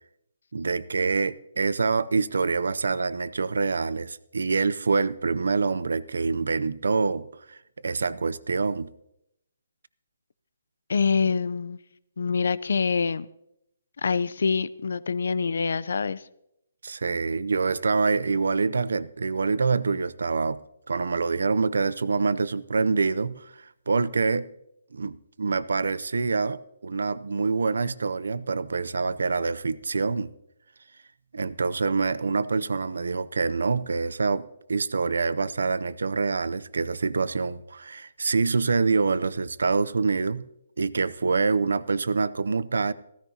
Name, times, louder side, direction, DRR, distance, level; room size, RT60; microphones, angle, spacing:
voice 1, 0.5-7.6 7.8-8.9 16.8-20.6 20.9-24.5 24.9-30.3 31.3-40.5 40.8-42.9, right 4 dB, 85° right, 0.5 m, -26 dB
voice 2, 10.9-11.8 12.2-13.3 14.0-16.2, left 5 dB, 75° left, 0.5 m, -25 dB
16.0 x 14.5 x 2.8 m
hypercardioid pair, 160°, 0 cm